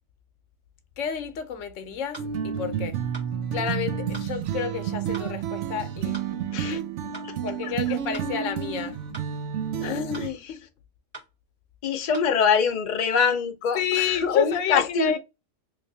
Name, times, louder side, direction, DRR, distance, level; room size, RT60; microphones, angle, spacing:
voice 1, 1.0-3.0 3.5-6.2 7.4-9.0 9.8-10.6 13.7-15.2, left 7 dB, 85° left, 1.0 m, -30 dB
sound 1, 2.1-2.3 3.1-3.3 4.1-4.3 5.1-5.3 6.1-6.3 7.1-7.3 8.1-8.3 9.1-9.3 10.1-10.3 11.1-11.3 12.1-12.3, right 2 dB, 25° right, 1.2 m, -42 dB
sound 2, 2.2-10.3, right 8 dB, 75° right, 0.9 m, -30 dB
voice 2, 6.5-6.8 7.1-7.4 7.6-8.0 9.8-10.5 11.8-15.2, left 6 dB, 50° left, 0.6 m, -25 dB
3.2 x 2.9 x 2.6 m
omnidirectional pair, 1.3 m